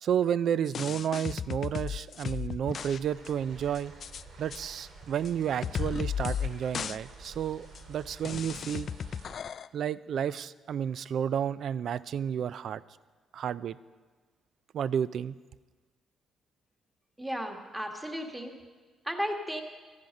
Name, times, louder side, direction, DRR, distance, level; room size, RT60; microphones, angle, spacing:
voice 1, 0.0-3.9 4.4-8.9 9.7-12.8 13.3-13.8 14.7-15.4, right 9 dB, 65° right, 17 dB, 0.4 m, -31 dB
sound 1, 0.7-3.0 3.3-3.4 3.8-4.2 4.5-4.6 5.3-5.4 5.6-6.5 6.7-7.0 7.3-7.4 7.8-7.9 8.3-9.7, left 7 dB, 55° left, 0.3 m, -34 dB
sound 2, 2.7-9.3, right 3 dB, 80° right, 2.2 m, -50 dB
voice 2, 17.2-18.6 19.0-19.6, equal, 10° right, 3 dB, 1.6 m, -34 dB
13.0 x 10.5 x 5.3 m, 1.4 s
cardioid pair, 90°, 0 cm